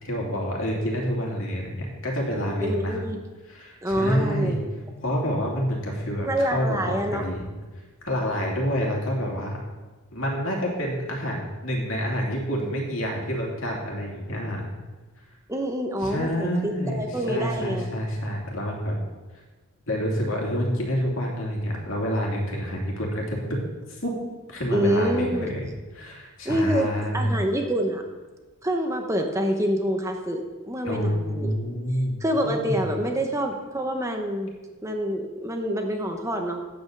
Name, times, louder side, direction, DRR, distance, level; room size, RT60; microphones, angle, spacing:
voice 1, 0.0-3.0 3.5-4.6 5.0-7.4 8.0-9.6 10.1-14.7 16.0-19.0 19.9-23.6 23.9-24.1 24.5-25.7 25.9-27.4 30.8-32.2 32.4-32.8, equal, 60° left, -2 dB, 2.7 m, -28 dB
voice 2, 2.6-3.2 3.8-4.6 6.3-7.3 15.5-17.9 24.7-25.5 26.4-28.0 28.6-31.5 32.2-34.5 34.8-36.6, equal, 15° right, 3 dB, 0.8 m, -26 dB
9.2 x 8.0 x 6.6 m, 1.3 s
head